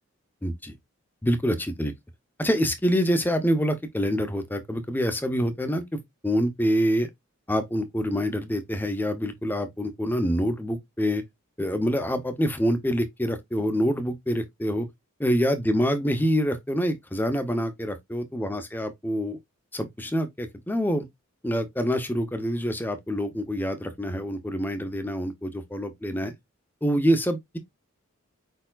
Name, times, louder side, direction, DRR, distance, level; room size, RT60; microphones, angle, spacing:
voice 1, 0.4-0.8 1.2-1.9 2.4-5.8 6.2-7.1 7.5-11.2 11.6-14.9 15.2-19.4 19.7-21.1 21.4-26.3 26.8-27.6, equal, 10° left, 0.6 m, -26 dB
4.9 x 4.4 x 2.3 m
head